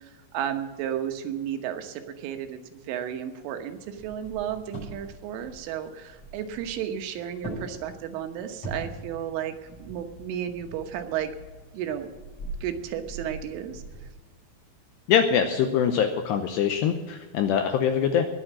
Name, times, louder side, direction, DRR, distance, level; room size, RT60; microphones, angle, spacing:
voice 1, 0.0-11.3 11.7-12.1 12.6-13.8, right 9 dB, 80° right, 7 dB, 3.6 m, -33 dB
sound 1, 3.7-14.1, right 2 dB, 35° left, 7.7 m, -42 dB
voice 2, 15.1-18.3, left 8 dB, 80° left, 6 dB, 2.5 m, -23 dB
20.5 x 7.1 x 7.5 m, 1.3 s
omnidirectional pair, 5.7 m